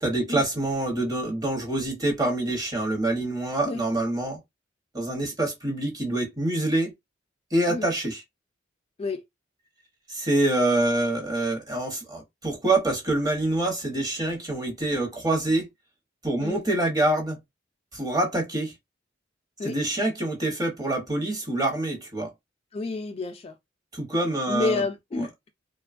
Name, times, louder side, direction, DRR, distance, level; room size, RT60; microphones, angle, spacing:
voice 1, 0.0-4.4 4.9-6.9 7.5-8.2 10.1-15.7 16.2-17.4 17.9-18.7 19.6-22.3 23.9-24.8 25.2-25.3, right 2 dB, 20° right, 0.9 m, -26 dB
voice 2, 22.7-23.5 24.5-25.5, left 3 dB, 30° left, 0.3 m, -29 dB
2.9 x 2.2 x 2.4 m
head